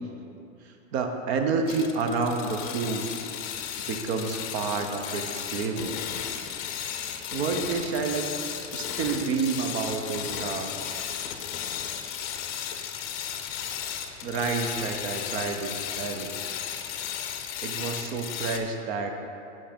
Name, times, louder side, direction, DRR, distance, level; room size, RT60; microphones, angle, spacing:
voice 1, 0.6-3.1 3.9-6.0 7.3-8.3 8.7-10.8 14.2-16.3 17.6-19.1, right 4 dB, 55° right, 5 dB, 0.8 m, -29 dB
sound 1, 1.7-18.6, left 9 dB, 40° left, 0.5 m, -35 dB
5.6 x 5.5 x 5.1 m, 2.7 s
supercardioid pair, 155°, 38 cm